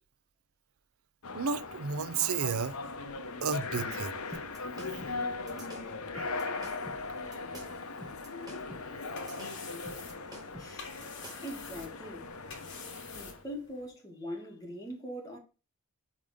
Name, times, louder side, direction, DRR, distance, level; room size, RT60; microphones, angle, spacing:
sound 1, 1.2-13.4, left 3 dB, 90° left, 0.9 m, -39 dB
voice 1, 1.3-2.8 3.4-4.4 6.1-6.8, right 6 dB, 80° right, 0.5 m, -33 dB
sound 2, 4.3-11.6, right 1 dB, 20° right, 1.4 m, -49 dB
sound 3, 8.8-13.9, left 5 dB, 60° left, 1.7 m, -49 dB
voice 2, 10.6-10.9 11.4-12.3 13.0-15.4, equal, 15° left, 1.8 m, -42 dB
5.2 x 3.7 x 4.8 m
head